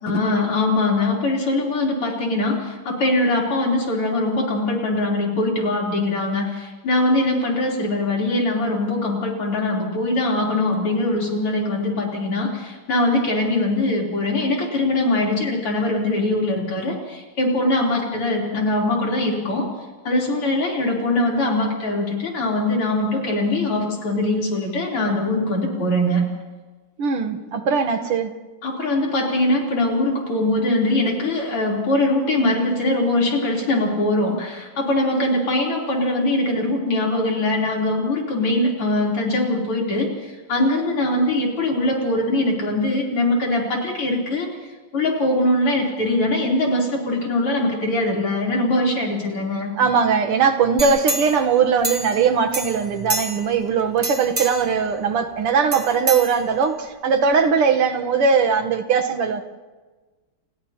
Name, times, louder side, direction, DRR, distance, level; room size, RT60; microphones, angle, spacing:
voice 1, 0.0-19.7 20.0-26.2 28.6-44.5 44.9-49.7, left 2 dB, 85° left, -2 dB, 4.7 m, -22 dB
voice 2, 27.0-28.3 49.8-59.4, right 6 dB, 85° right, 5 dB, 2.2 m, -20 dB
sound 1, 50.8-52.3 52.5-53.6 54.0-54.8 55.7-56.8 57.3-57.4, right 2 dB, 25° right, 1.2 m, -28 dB
30.0 x 29.5 x 2.9 m, 1.3 s
omnidirectional pair, 2.4 m